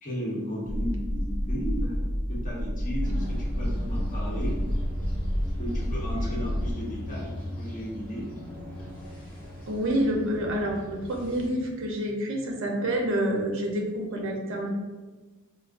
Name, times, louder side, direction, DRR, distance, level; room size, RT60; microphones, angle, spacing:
voice 1, 0.0-4.6 5.6-8.3, equal, 40° left, -5 dB, 1.0 m, -35 dB
sound 1, 0.7-6.7, equal, 70° left, 0.9 m, -29 dB
sound 2, 3.0-11.5, left 1 dB, 5° left, 0.8 m, -39 dB
voice 2, 9.7-14.7, right 1 dB, 65° right, 0 dB, 0.7 m, -28 dB
4.6 x 2.1 x 2.5 m, 1.3 s
head